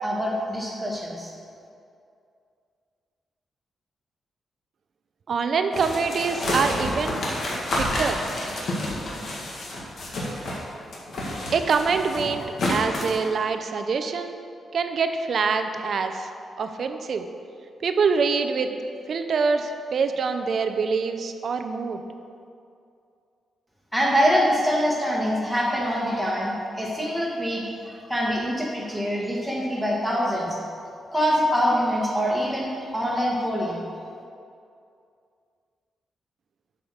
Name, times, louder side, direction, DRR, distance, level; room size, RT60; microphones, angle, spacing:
voice 1, 0.0-1.3 23.9-30.5 31.1-33.8, equal, ahead, -4 dB, 1.7 m, -24 dB
voice 2, 5.3-7.2 7.8-8.2 11.5-12.4 12.7-14.4 14.7-16.3 16.6-17.3 17.8-18.7 19.1-22.0, right 5 dB, 50° right, 7 dB, 0.6 m, -25 dB
sound 1, 5.7-10.6 10.9-13.2, left 1 dB, 55° left, 1.7 m, -29 dB
8.5 x 5.7 x 6.4 m, 2.5 s
wide cardioid pair, 145°, 0 cm